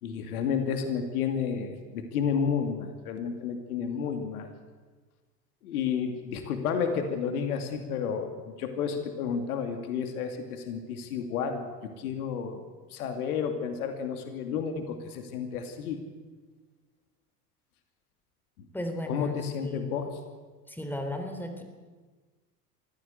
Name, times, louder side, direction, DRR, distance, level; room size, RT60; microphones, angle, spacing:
voice 1, 0.0-4.5 5.6-12.6 12.9-16.0 19.1-20.2, left 6 dB, 65° left, 6 dB, 2.6 m, -31 dB
voice 2, 18.7-19.9 20.7-21.6, left 1 dB, 5° left, 5 dB, 3.6 m, -35 dB
24.5 x 15.0 x 8.2 m, 1.4 s
figure-of-eight pair, 75°, 48 cm